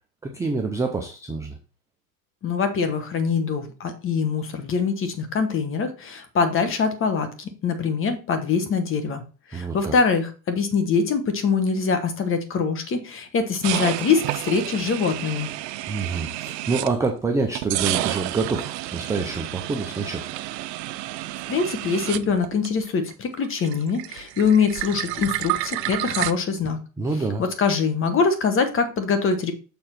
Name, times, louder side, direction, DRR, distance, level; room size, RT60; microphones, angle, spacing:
voice 1, 0.2-1.6 9.5-10.0 15.9-20.3 27.0-27.4, right 3 dB, 5° right, 3 dB, 0.4 m, -27 dB
voice 2, 2.4-9.2 9.5-15.5 21.5-26.8 27.4-29.5, left 5 dB, 25° left, 8 dB, 1.3 m, -23 dB
sound 1, 13.6-17.2 17.6-23.1 23.4-26.3, right 16 dB, 80° right, 0.7 m, -30 dB
6.9 x 3.8 x 5.9 m, 0.34 s
supercardioid pair, 135°, 49 cm